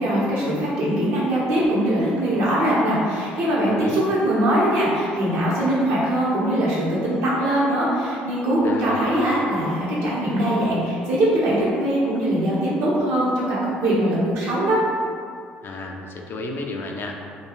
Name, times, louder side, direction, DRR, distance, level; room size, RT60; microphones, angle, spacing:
voice 1, 0.0-14.8, right 1 dB, 65° right, -7 dB, 0.8 m, -21 dB
voice 2, 3.6-4.1 8.6-9.3 15.6-17.1, left 2 dB, 45° left, 2 dB, 0.3 m, -33 dB
2.2 x 2.2 x 2.9 m, 2.4 s
hypercardioid pair, 55°, 5 cm